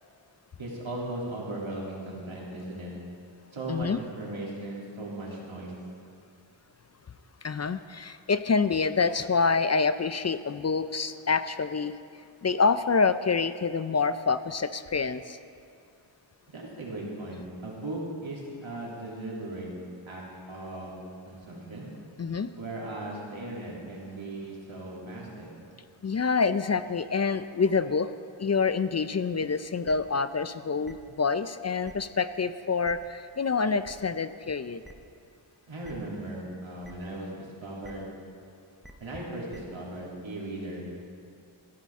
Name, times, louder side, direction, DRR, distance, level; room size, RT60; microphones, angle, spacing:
voice 1, 0.6-2.9 3.5-5.7 16.5-19.7 20.1-20.2 20.5-20.9 21.3-21.9 22.5-25.5 35.7-38.1 39.0-40.8, right 1 dB, 75° right, -4 dB, 3.1 m, -37 dB
voice 2, 3.7-4.0 7.4-12.0 12.4-15.4 22.2-22.5 26.0-28.1 28.4-34.8, left 5 dB, 35° left, 12 dB, 0.4 m, -27 dB
sound 1, 29.8-29.9 30.8-30.9 31.8-31.9 32.8-32.9 33.8-33.9 34.8-34.9 35.8-35.9 36.8-36.9 37.8-37.9 38.8-38.9 39.5-39.6, equal, ahead, 0.9 m, -47 dB
14.5 x 13.5 x 3.6 m, 2.3 s
wide cardioid pair, 70°, 48 cm